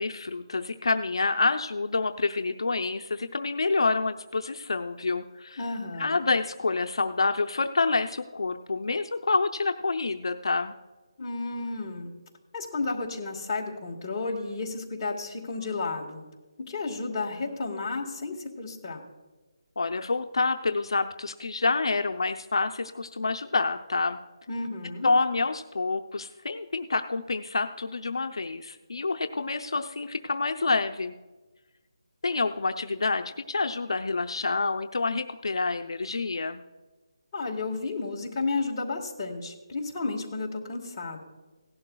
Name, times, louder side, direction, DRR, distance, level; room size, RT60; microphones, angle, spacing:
voice 1, 0.0-5.6 6.0-10.7 19.8-24.2 25.0-31.2 32.2-36.6, left 3 dB, 65° left, 6 dB, 0.6 m, -27 dB
voice 2, 5.6-6.2 11.2-12.1 12.5-16.2 16.7-19.0 24.5-25.1 37.3-41.2, left 3 dB, 15° left, -4 dB, 1.4 m, -32 dB
17.5 x 11.5 x 2.3 m, 1.2 s
hypercardioid pair, 175°, 3 cm